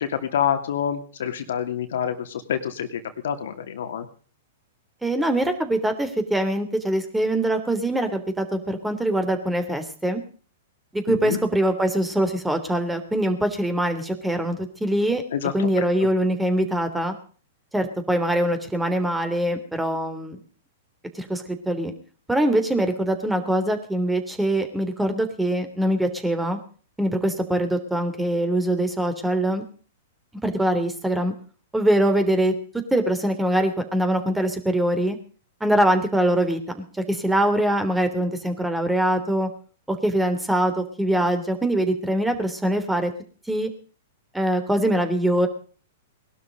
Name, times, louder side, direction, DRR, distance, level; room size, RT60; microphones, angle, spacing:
voice 1, 0.0-4.1 11.1-11.4 15.3-16.1, left 8 dB, 65° left, 8 dB, 2.6 m, -27 dB
voice 2, 5.0-10.2 10.9-15.2 15.5-17.1 17.7-20.4 21.2-21.9 22.3-26.6 27.0-29.6 30.4-31.3 31.7-32.5 32.9-35.2 35.6-36.6 37.1-39.5 39.9-43.1 43.5-43.7 44.3-45.5, right 1 dB, 5° right, 8 dB, 3.3 m, -23 dB
20.5 x 12.5 x 5.2 m, 0.42 s
hypercardioid pair, 110°, 0 cm